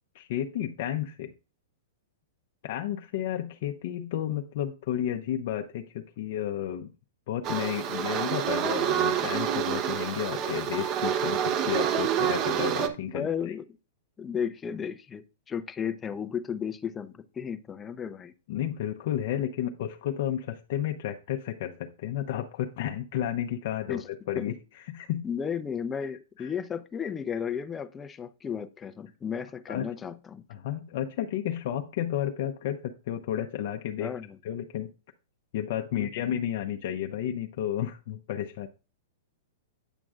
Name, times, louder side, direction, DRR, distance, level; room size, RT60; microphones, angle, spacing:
voice 1, 0.1-1.3 2.6-6.9 7.3-13.5 18.5-25.3 26.4-26.5 29.7-29.9 30.5-34.1 34.4-34.9 35.5-38.7, left 11 dB, 55° left, 0.6 m, -32 dB
sound 1, 7.4-12.9, right 9 dB, 35° right, 0.7 m, -28 dB
voice 2, 13.1-13.6 14.2-18.3 23.9-24.1 24.4-24.5 25.2-30.4 34.0-34.4 35.9-36.1, left 7 dB, 15° left, 0.5 m, -34 dB
8.9 x 6.1 x 2.4 m
hypercardioid pair, 140°, 0 cm